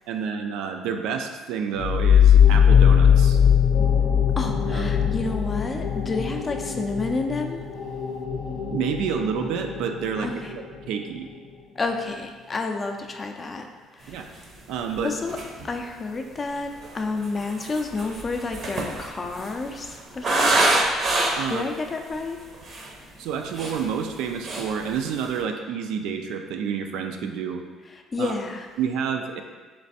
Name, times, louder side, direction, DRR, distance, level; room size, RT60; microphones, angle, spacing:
voice 1, 0.1-3.4 4.7-5.0 8.7-11.3 14.1-14.3 14.7-15.1 21.4-21.6 23.2-27.6 28.2-28.4 28.8-29.4, right 7 dB, 80° right, 5 dB, 0.4 m, -29 dB
sound 1, 1.7-11.1, left 8 dB, 80° left, 0.6 m, -20 dB
voice 2, 4.4-7.6 10.2-10.4 11.8-13.7 13.9-14.2 15.0-15.4 15.6-20.7 21.5-22.4 28.1-28.7, left 3 dB, 25° left, 4 dB, 0.4 m, -30 dB
sound 2, 14.4-14.5 14.9-15.0 15.3-15.7 16.6-21.6 22.1-22.2 22.5-22.9 23.3-24.2 24.4-24.7 25.0-25.4, right 2 dB, 45° right, 0.7 m, -26 dB
3.4 x 3.2 x 4.1 m, 1.4 s
cardioid pair, 125°, 0 cm